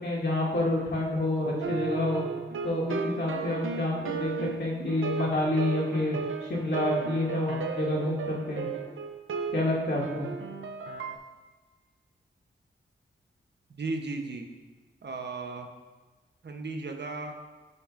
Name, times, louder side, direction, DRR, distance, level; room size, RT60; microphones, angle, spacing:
voice 1, 0.0-2.2 2.6-4.3 4.6-6.2 6.4-8.7 9.5-10.2, left 1 dB, 55° left, -4 dB, 2.2 m, -28 dB
sound 1, 1.6-11.2, right 5 dB, 75° right, 0.6 m, -35 dB
voice 2, 13.7-14.5 15.0-15.7 16.4-17.3, right 3 dB, 55° right, 4 dB, 0.9 m, -35 dB
12.0 x 5.4 x 2.5 m, 1.3 s
cardioid pair, 55°, 21 cm